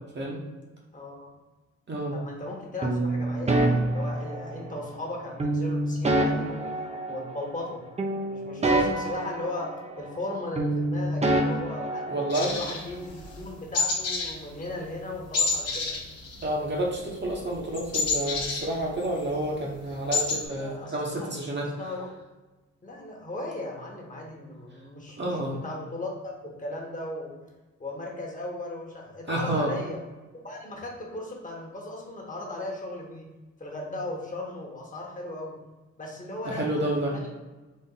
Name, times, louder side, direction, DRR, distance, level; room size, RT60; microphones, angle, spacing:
voice 1, 0.9-1.3 2.1-6.8 7.1-7.8 8.3-12.1 12.4-16.0 20.3-21.3 21.6-22.1 22.8-27.4 27.8-30.0 30.4-33.3 33.6-35.6 36.0-37.3, left 2 dB, 25° left, -1 dB, 1.2 m, -37 dB
sound 1, 2.8-4.8 5.4-7.7 8.0-10.3 10.6-12.6, right 2 dB, 20° right, 0.6 m, -27 dB
voice 2, 12.1-12.5 16.4-21.7 25.2-25.6 29.3-29.7 36.6-37.1, right 1 dB, 35° right, -2 dB, 1.0 m, -29 dB
sound 2, 12.3-13.4 13.7-14.4 14.6-14.8 15.3-16.9 17.1-19.2 19.6-19.7 19.9-20.4, left 3 dB, 55° left, 1.1 m, -28 dB
4.2 x 2.5 x 3.9 m, 1.2 s
cardioid pair, 90°, 30 cm